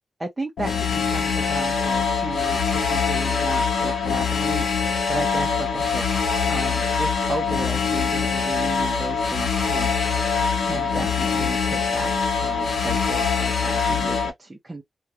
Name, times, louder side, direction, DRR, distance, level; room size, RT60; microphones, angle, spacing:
voice 1, 0.2-6.0 6.5-10.2 10.6-14.8, right 2 dB, 20° right, 0.7 m, -34 dB
sound 1, 0.6-14.3, left 5 dB, 80° left, 1.0 m, -23 dB
3.0 x 2.4 x 2.7 m
wide cardioid pair, 105°, 0 cm